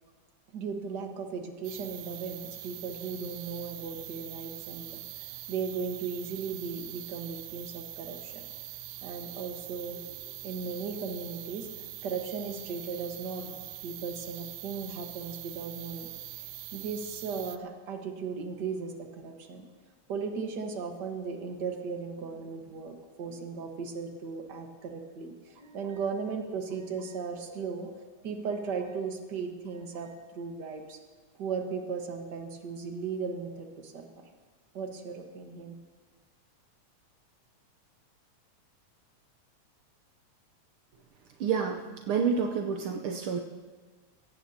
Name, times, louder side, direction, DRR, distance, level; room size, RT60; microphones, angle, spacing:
voice 1, 0.5-8.4 9.0-16.1 16.7-19.6 20.1-31.0 31.4-34.2 34.7-35.7, right 5 dB, 45° right, 3 dB, 1.6 m, -37 dB
sound 1, 1.6-17.6, right 15 dB, 90° right, 2.1 m, -43 dB
voice 2, 41.4-43.4, right 6 dB, 75° right, 3 dB, 1.2 m, -29 dB
22.0 x 17.5 x 2.9 m, 1.4 s
omnidirectional pair, 3.4 m